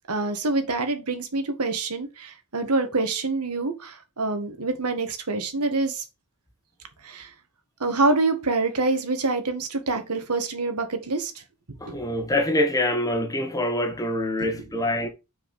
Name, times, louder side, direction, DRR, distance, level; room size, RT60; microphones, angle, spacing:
voice 1, 0.1-6.0 7.0-7.3 7.8-11.4 11.7-12.0 14.4-14.6 15.0-15.1, right 3 dB, 90° right, 1.8 m, -26 dB
voice 2, 11.8-15.1, left 1 dB, 15° left, 1.3 m, -25 dB
6.7 x 4.9 x 6.5 m
head